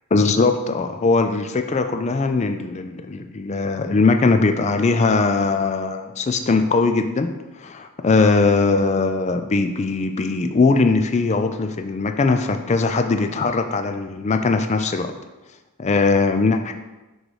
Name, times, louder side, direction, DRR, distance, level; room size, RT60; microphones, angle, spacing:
voice 1, 0.1-7.3 7.6-15.1 15.8-16.7, left 3 dB, 30° left, 7 dB, 0.4 m, -20 dB
6.5 x 3.2 x 4.7 m, 1.1 s
head